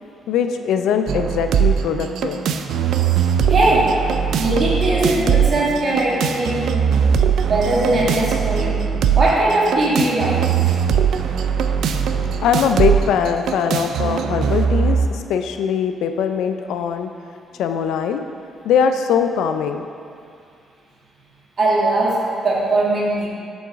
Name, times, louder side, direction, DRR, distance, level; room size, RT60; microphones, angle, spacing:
voice 1, 0.3-2.4 12.4-17.1 17.6-18.2 18.6-19.9, left 7 dB, 85° left, 7 dB, 0.3 m, -21 dB
sound 1, 1.1-15.1, right 7 dB, 75° right, 0.4 m, -20 dB
voice 2, 3.5-3.9 4.4-6.7 7.5-8.8 9.1-10.4 21.6-23.3, right 2 dB, 40° right, -4 dB, 1.6 m, -19 dB
7.0 x 3.9 x 6.1 m, 2.4 s
cardioid pair, 90°, 0 cm